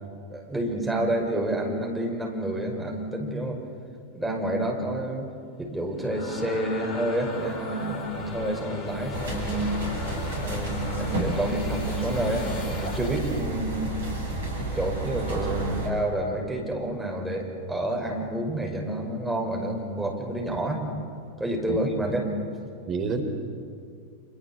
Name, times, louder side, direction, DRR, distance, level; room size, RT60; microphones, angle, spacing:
voice 1, 0.3-3.6 4.1-5.3 5.6-9.7 10.3-13.9 14.7-15.5 15.8-20.9 21.4-22.4, right 1 dB, 5° right, 0 dB, 5.8 m, -29 dB
sound 1, 5.8-13.5, left 3 dB, 35° left, 3.6 m, -37 dB
sound 2, 9.1-15.9, right 2 dB, 65° right, 6.9 m, -31 dB
voice 2, 15.3-15.9 21.7-21.8 22.9-23.2, right 4 dB, 30° right, 5 dB, 3.5 m, -30 dB
29.0 x 28.0 x 7.5 m, 2.3 s
figure-of-eight pair, 90°, 0 cm